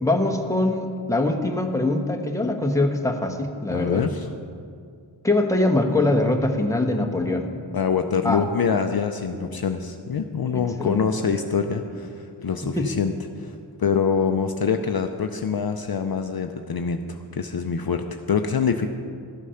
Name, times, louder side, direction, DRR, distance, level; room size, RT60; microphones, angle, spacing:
voice 1, 0.0-4.0 5.2-7.5 8.2-8.4 9.4-9.6 10.5-11.1 12.8-12.9, left 2 dB, 5° left, 3 dB, 1.0 m, -23 dB
voice 2, 3.7-4.3 7.7-18.9, left 6 dB, 50° left, 6 dB, 0.6 m, -25 dB
13.0 x 8.2 x 5.7 m, 2.3 s
wide cardioid pair, 90°, 49 cm